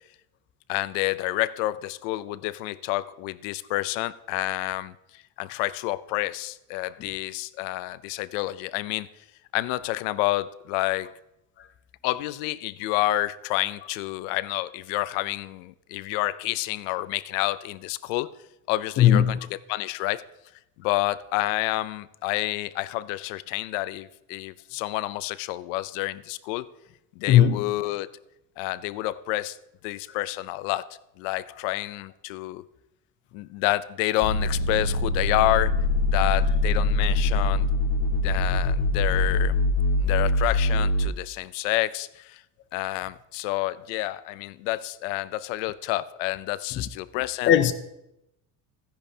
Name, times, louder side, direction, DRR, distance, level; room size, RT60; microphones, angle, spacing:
voice 1, 0.7-5.0 5.4-9.1 9.5-11.1 12.0-18.3 18.7-20.2 20.8-26.7 27.2-28.1 28.6-29.6 29.8-30.9 31.2-32.6 33.3-35.7 36.1-37.7 38.2-39.5 40.0-42.4 42.7-47.5, left 17 dB, 75° left, 0.6 m, -29 dB
voice 2, 19.0-19.4 27.3-27.7 47.5-47.7, left 10 dB, 30° left, 0.4 m, -17 dB
sound 1, 34.2-41.1, left 2 dB, 60° left, 1.7 m, -23 dB
15.0 x 10.5 x 2.8 m
cardioid pair, 150°, 38 cm